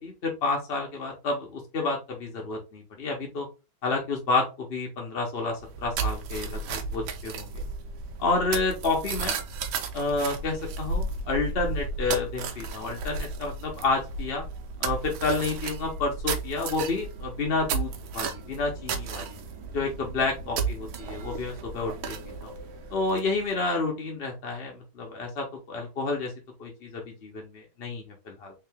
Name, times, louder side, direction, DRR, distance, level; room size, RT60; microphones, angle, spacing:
voice 1, 0.0-3.5 3.8-7.6 8.2-9.4 9.9-14.4 14.8-19.4 19.7-22.2 22.4-22.5 22.9-26.3 26.6-28.5, left 3 dB, 50° left, 0 dB, 0.7 m, -30 dB
sound 1, 5.6-23.5, right 4 dB, 90° right, 1.5 m, -34 dB
3.6 x 2.9 x 3.5 m, 0.28 s
omnidirectional pair, 2.2 m